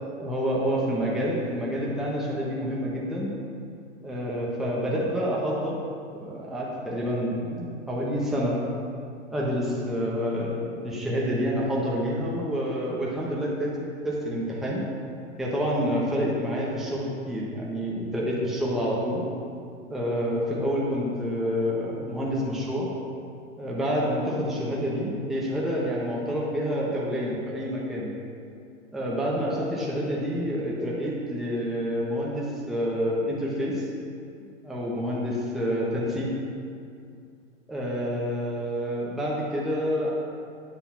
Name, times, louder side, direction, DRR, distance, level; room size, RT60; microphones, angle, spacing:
voice 1, 0.2-3.3 4.0-5.8 6.1-8.6 9.3-13.7 14.0-14.8 15.4-19.2 19.9-22.9 23.6-28.1 28.9-33.8 34.6-36.3 37.7-40.1, equal, ahead, -5 dB, 0.7 m, -28 dB
8.1 x 2.9 x 5.8 m, 2.4 s
hypercardioid pair, 120°, 37 cm